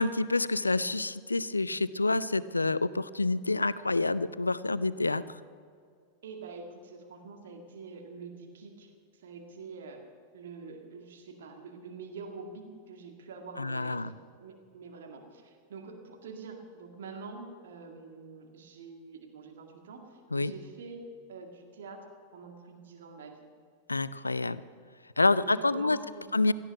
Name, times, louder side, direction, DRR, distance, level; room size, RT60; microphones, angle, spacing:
voice 1, 0.0-5.2 13.6-14.1 20.3-20.5 23.9-24.6 25.2-26.0 26.3-26.5, left 3 dB, 80° left, 17 dB, 0.5 m, -27 dB
voice 2, 6.2-8.9 9.2-10.0 10.3-14.0 14.4-20.1 20.3-21.0 21.3-22.0 22.3-23.4 25.3-26.3, right 4 dB, 60° right, 3 dB, 2.1 m, -45 dB
17.5 x 13.0 x 6.0 m, 2.2 s
figure-of-eight pair, 90°, 0 cm